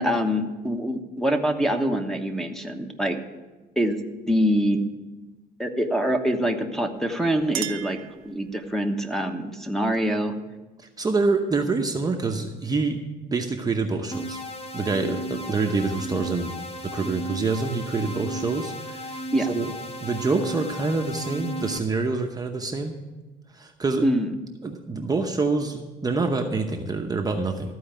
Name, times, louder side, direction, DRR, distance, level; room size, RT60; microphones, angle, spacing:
voice 1, 0.0-3.2 3.8-4.8 5.6-8.0 8.2-10.3 19.3-19.5 24.0-24.3, equal, ahead, 5 dB, 1.1 m, -25 dB
Chink clink, 7.0-8.8, right 11 dB, 65° right, 0.7 m, -37 dB
voice 2, 10.8-13.0 13.3-14.4 14.7-16.6 16.9-19.7 20.0-22.9 23.5-24.0 24.6-27.8, right 3 dB, 20° right, 3 dB, 0.8 m, -26 dB
sound 1, 14.1-21.8, right 1 dB, 35° left, 1.2 m, -35 dB
14.0 x 4.7 x 8.9 m, 1.2 s
cardioid pair, 110°, 17 cm